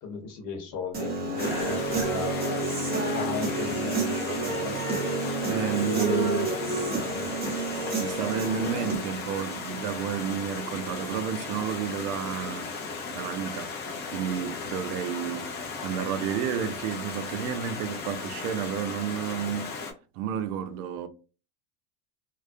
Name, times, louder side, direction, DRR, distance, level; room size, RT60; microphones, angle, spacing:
voice 1, 0.0-2.7 3.1-4.8 5.7-7.3, left 4 dB, 45° left, 1.0 m, -36 dB
Human voice / Guitar, 0.9-9.0, right 3 dB, 20° right, 0.9 m, -29 dB
Stream, 1.4-19.9, left 4 dB, 25° left, 0.3 m, -36 dB
voice 2, 5.5-6.5 8.0-12.8 13.1-13.7 14.1-19.7 20.1-21.1, right 9 dB, 70° right, 0.6 m, -31 dB
2.3 x 2.1 x 2.5 m
supercardioid pair, 125°, 46 cm